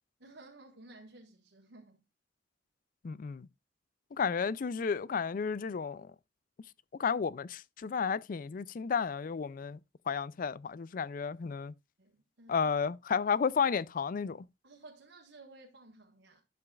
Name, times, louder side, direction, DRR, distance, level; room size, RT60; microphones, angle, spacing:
voice 1, 0.2-2.0 12.0-12.7 14.6-16.4, right 2 dB, 75° right, 1.6 m, -55 dB
voice 2, 3.0-3.5 4.1-6.1 7.0-9.8 10.1-11.7 12.5-14.5, left 6 dB, 50° left, 0.4 m, -32 dB
11.5 x 7.0 x 2.4 m
head